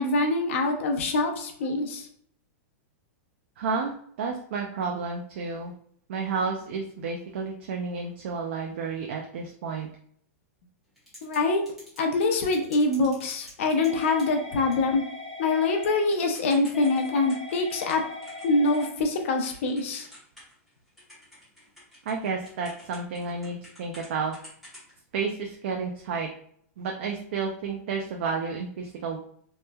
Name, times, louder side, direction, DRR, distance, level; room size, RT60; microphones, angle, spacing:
voice 1, 0.0-2.1 11.2-11.6 12.0-15.0 15.4-18.0 18.4-20.1, left 3 dB, 55° left, 3 dB, 0.5 m, -24 dB
voice 2, 3.6-5.7 6.1-9.9 22.1-24.3 25.1-26.3 26.8-29.2, right 5 dB, 50° right, 1 dB, 0.4 m, -31 dB
Typing / Telephone, 11.0-11.4 11.7-20.7 21.0-24.1 24.3-24.9, left 2 dB, ahead, 0.9 m, -41 dB
3.0 x 2.1 x 2.2 m, 0.63 s
supercardioid pair, 175°, 8 cm